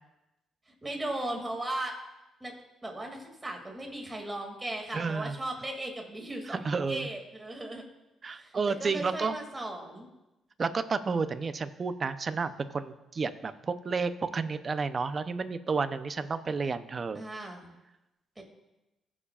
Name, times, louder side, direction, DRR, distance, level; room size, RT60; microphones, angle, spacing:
voice 1, 0.8-1.9 2.4-2.5 2.8-7.8 8.3-10.1 17.2-17.7 18.4-18.5, right 1 dB, 15° right, 1 dB, 2.4 m, -37 dB
voice 2, 4.9-5.4 6.6-7.1 8.2-9.4 10.6-17.2, right 4 dB, 40° right, 11 dB, 0.7 m, -31 dB
22.0 x 7.3 x 2.4 m, 0.98 s
cardioid pair, 90°, 0 cm